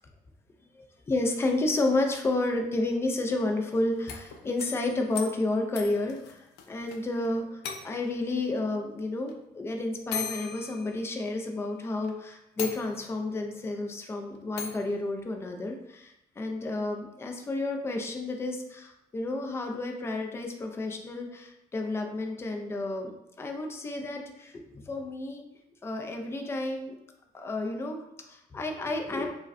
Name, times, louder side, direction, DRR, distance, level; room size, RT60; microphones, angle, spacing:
voice 1, 0.7-25.4 25.8-26.9 27.3-29.3, left 2 dB, 15° left, 3 dB, 0.3 m, -31 dB
sound 1, 3.9-7.0 7.2-7.3 7.6-8.2 9.3-9.4 10.1-11.5 12.0-12.1 12.6-13.3 14.6-14.9, left 6 dB, 90° left, 0.5 m, -38 dB
4.9 x 2.1 x 2.5 m, 0.85 s
cardioid pair, 150°, 17 cm